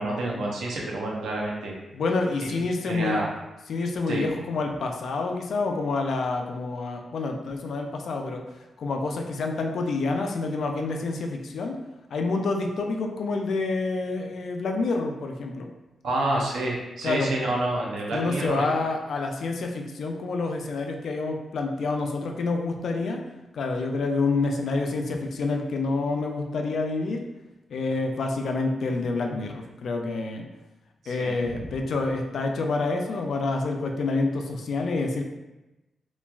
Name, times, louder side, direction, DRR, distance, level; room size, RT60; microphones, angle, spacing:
voice 1, 0.0-1.7 2.4-2.5 2.9-3.3 4.1-4.2 16.0-18.7 31.0-31.3, right 2 dB, 90° right, -2 dB, 0.5 m, -28 dB
voice 2, 1.9-3.2 3.7-8.4 8.8-11.7 12.1-15.7 17.0-17.3 18.1-23.2 23.5-27.2 27.7-30.4 31.1-35.2, left 3 dB, 70° left, 3 dB, 0.3 m, -28 dB
3.0 x 2.3 x 2.3 m, 1.0 s
wide cardioid pair, 115°, 0 cm